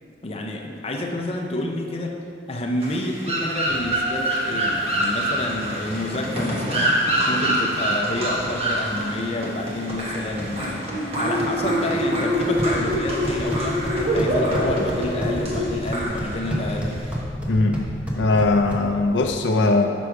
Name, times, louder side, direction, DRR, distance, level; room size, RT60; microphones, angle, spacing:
voice 1, 0.2-2.2 2.5-10.9 11.2-17.0, left 1 dB, 35° left, 1 dB, 0.6 m, -29 dB
sound 1, 2.8-17.2, equal, 35° right, 1.2 m, -25 dB
sound 2, 12.4-19.4, equal, 5° right, 0.9 m, -30 dB
voice 2, 17.5-17.8 18.2-19.9, left 2 dB, 80° left, 3 dB, 0.5 m, -20 dB
6.5 x 6.1 x 4.6 m, 2.4 s
head